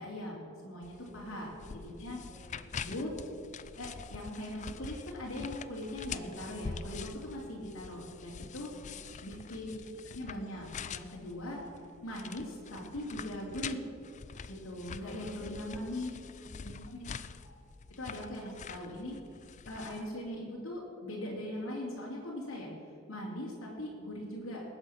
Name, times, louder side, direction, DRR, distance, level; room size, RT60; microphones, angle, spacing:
voice 1, 0.0-2.2 2.8-3.1 3.8-8.7 9.2-9.7 10.0-11.6 12.0-13.9 14.5-16.1 16.6-17.5 18.0-19.2 19.6-22.7 23.1-24.6, left 1 dB, 75° left, -4 dB, 2.7 m, -40 dB
sound 1, 0.8-20.1, left 6 dB, 35° left, 0.4 m, -45 dB
voice 2, 1.1-2.0 2.3-2.7 8.7-9.2 15.0-16.8, equal, 15° right, -4 dB, 1.9 m, -54 dB
19.0 x 8.0 x 5.9 m, 2.4 s
head